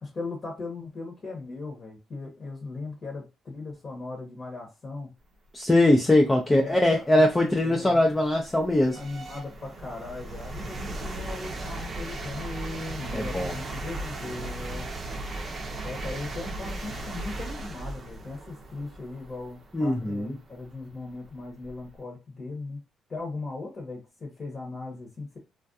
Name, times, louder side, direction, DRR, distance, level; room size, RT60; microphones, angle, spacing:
voice 1, 0.0-5.1 6.5-8.0 8.9-14.9 15.8-22.8 23.1-25.4, left 3 dB, 40° left, 0.9 m, -38 dB
voice 2, 5.5-9.0 13.1-13.5 19.7-20.3, left 1 dB, 15° left, 0.4 m, -21 dB
sound 1, 6.5-6.6 7.2-22.0, right 2 dB, 40° right, 0.6 m, -37 dB
2.3 x 2.2 x 2.6 m
cardioid pair, 90°, 0 cm